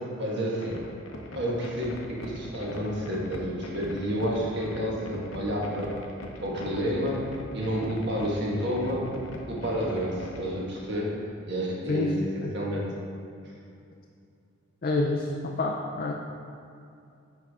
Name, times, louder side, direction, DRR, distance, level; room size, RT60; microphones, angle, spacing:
voice 1, 0.2-0.7 1.3-6.0 6.4-7.2 7.5-9.1 9.5-12.9, equal, 55° right, -3 dB, 1.5 m, -30 dB
sound 1, 0.6-10.6, left 1 dB, 75° left, 0.8 m, -41 dB
voice 2, 14.8-16.1, left 2 dB, 45° left, 0 dB, 0.4 m, -28 dB
8.9 x 5.5 x 3.6 m, 2.5 s
head